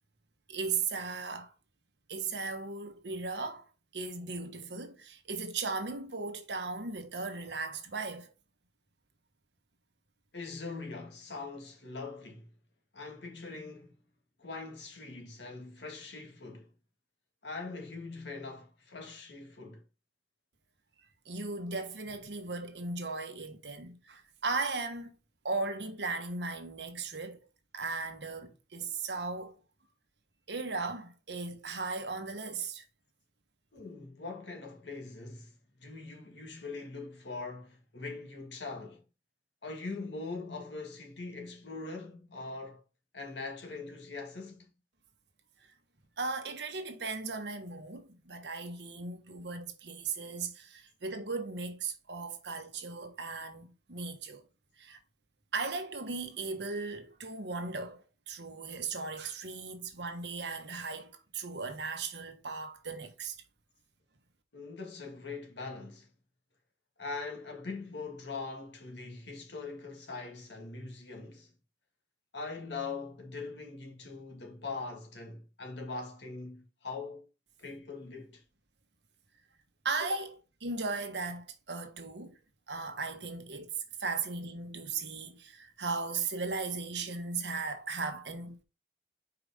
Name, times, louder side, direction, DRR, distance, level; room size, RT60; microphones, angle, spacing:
voice 1, 0.5-1.5 2.1-3.7 3.9-8.3 21.2-25.2 25.4-27.5 27.7-29.6 30.5-32.8 46.2-54.4 54.8-55.0 55.5-63.4 79.8-82.4 82.7-83.7 84.0-88.6, right 4 dB, 75° right, 1.3 m, -37 dB
voice 2, 10.3-12.5 12.9-14.0 14.4-16.7 17.4-19.8 33.7-35.5 35.8-39.0 39.6-42.8 43.1-44.7 64.5-66.1 67.0-71.5 72.3-77.3 77.6-78.4, left 3 dB, 80° left, 2.1 m, -42 dB
4.9 x 4.9 x 5.0 m
head